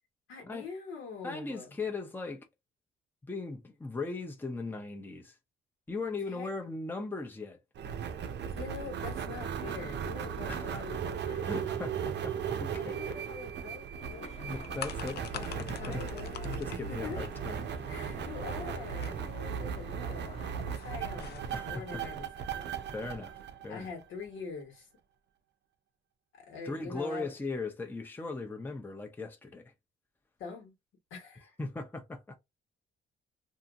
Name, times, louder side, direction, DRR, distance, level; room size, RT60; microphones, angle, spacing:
voice 1, 0.3-1.7 6.2-6.5 8.5-11.5 12.7-14.4 15.7-16.4 16.9-17.2 17.9-22.7 23.7-24.9 26.3-27.3 30.4-30.7 31.1-31.5, left 5 dB, 80° left, 1.3 m, -44 dB
voice 2, 1.2-2.5 3.3-5.4 5.9-7.6 10.5-10.8 11.4-13.2 14.4-16.0 16.4-17.6 21.5-22.0 22.9-23.3 23.6-23.9 26.7-29.7 31.6-32.4, left 3 dB, 10° left, 0.6 m, -38 dB
sound 1, 7.8-24.3, right 8 dB, 60° right, 0.6 m, -37 dB
sound 2, 14.0-20.6, left 5 dB, 35° left, 0.9 m, -50 dB
sound 3, 14.4-21.7, left 8 dB, 55° left, 0.4 m, -47 dB
2.8 x 2.5 x 2.4 m
cardioid pair, 90°, 20 cm